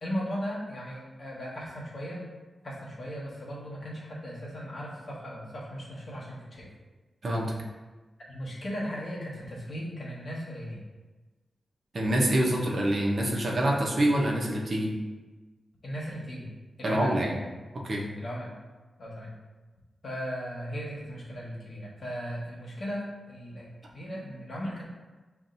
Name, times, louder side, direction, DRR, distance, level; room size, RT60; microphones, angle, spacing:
voice 1, 0.0-2.3 2.6-6.7 8.3-10.8 15.8-16.5 16.8-17.1 18.2-18.5 19.0-19.3 20.0-24.8, equal, 55° left, -5 dB, 1.4 m, -37 dB
voice 2, 7.2-7.5 11.9-14.9 16.8-17.3 17.7-18.1, right 1 dB, 50° right, -2 dB, 0.8 m, -26 dB
7.1 x 2.6 x 2.6 m, 1.2 s
wide cardioid pair, 115°, 0 cm